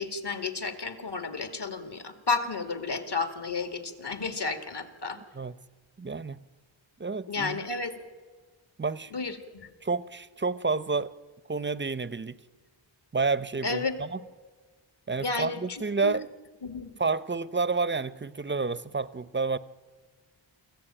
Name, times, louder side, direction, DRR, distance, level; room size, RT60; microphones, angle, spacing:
voice 1, 0.0-5.2 7.3-7.9 9.1-9.7 13.6-14.0 15.2-16.1 16.6-16.9, left 4 dB, 55° left, 2.3 m, -32 dB
voice 2, 6.0-6.4 7.0-7.6 8.8-9.1 9.8-11.1 11.5-12.4 13.1-14.2 15.1-16.3 17.0-19.6, right 4 dB, 25° right, 0.7 m, -29 dB
24.5 x 15.5 x 9.1 m
wide cardioid pair, 60°, 48 cm